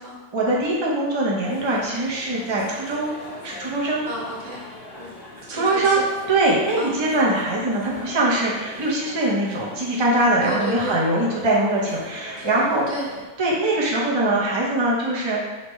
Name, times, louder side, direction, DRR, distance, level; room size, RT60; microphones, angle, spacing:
voice 1, 0.3-3.1 3.4-4.0 5.5-6.0 6.3-12.9 13.4-15.5, right 2 dB, 30° right, -5 dB, 0.5 m, -22 dB
sound 1, 1.4-13.3, left 2 dB, 45° left, 0.9 m, -42 dB
voice 2, 4.1-4.7 5.0-5.1 5.5-6.1 6.8-6.9 10.4-11.0 12.3-13.2, right 1 dB, 50° right, -5 dB, 1.3 m, -32 dB
5.2 x 3.3 x 3.1 m, 1.3 s
omnidirectional pair, 1.5 m